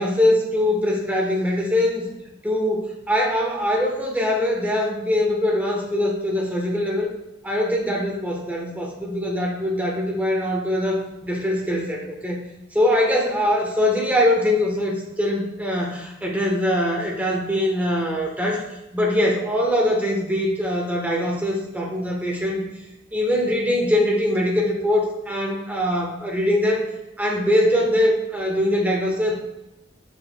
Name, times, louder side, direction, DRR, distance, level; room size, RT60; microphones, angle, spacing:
voice 1, 0.0-2.1 2.4-7.1 7.4-12.4 12.7-18.6 18.9-22.6 23.1-26.9 27.2-29.4, left 1 dB, 10° right, -1 dB, 1.1 m, -22 dB
7.3 x 6.0 x 2.2 m, 0.91 s
head